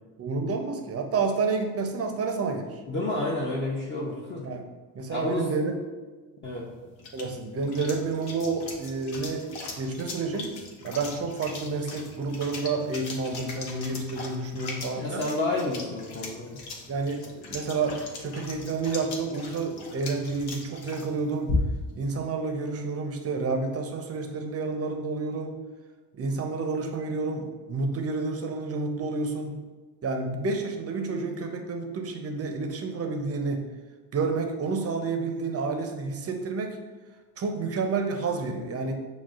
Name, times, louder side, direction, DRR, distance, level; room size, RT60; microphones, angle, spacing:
voice 1, 0.2-2.8 4.4-4.7 4.9-5.8 7.1-9.5 9.8-15.3 16.9-21.5 21.9-25.6 26.1-29.6 30.0-33.7 34.1-36.8 37.4-38.9, right 4 dB, 30° right, 4 dB, 0.6 m, -30 dB
voice 2, 2.9-4.5 5.1-5.5 6.4-6.7 14.9-16.6, left 2 dB, 25° left, -6 dB, 0.7 m, -30 dB
sound 1, 6.4-22.0, left 3 dB, 55° left, 0.9 m, -38 dB
5.9 x 2.0 x 2.4 m, 1.3 s
hypercardioid pair, 70°, 47 cm